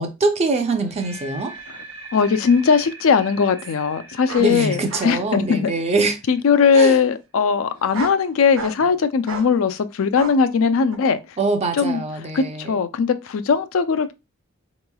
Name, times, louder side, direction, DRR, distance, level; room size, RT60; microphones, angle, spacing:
voice 1, 0.0-1.5 4.4-6.2 6.7-7.0 11.4-12.8, right 3 dB, 30° right, 0.5 m, -23 dB
sound 1, 0.7-6.8, right 2 dB, 65° right, 1.2 m, -42 dB
voice 2, 2.1-5.7 6.3-11.2 11.7-14.1, left 5 dB, 85° left, 0.4 m, -19 dB
sound 2, 2.2-2.3 4.3-4.5 4.9-5.1 5.5-6.0 6.8-6.9 7.7-8.2 8.5-8.9 9.3-9.5 10.1-10.4 10.9-11.0, right 4 dB, 90° right, 0.7 m, -33 dB
3.8 x 3.0 x 2.2 m
head